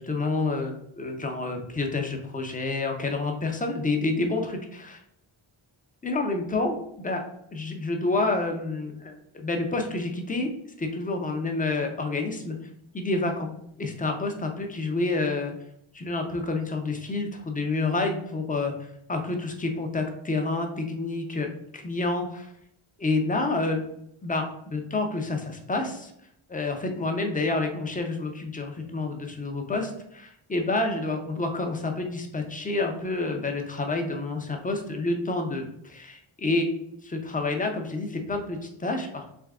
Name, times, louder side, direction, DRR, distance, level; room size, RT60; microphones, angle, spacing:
voice 1, 0.0-5.0 6.0-7.2 7.5-9.2 9.4-10.5 10.8-12.5 12.9-13.5 13.8-15.5 15.9-22.5 23.0-23.8 24.2-26.1 26.5-36.7 37.0-39.3, left 3 dB, 15° left, 4 dB, 0.5 m, -28 dB
3.5 x 3.2 x 3.5 m, 0.75 s
wide cardioid pair, 150°, 50 cm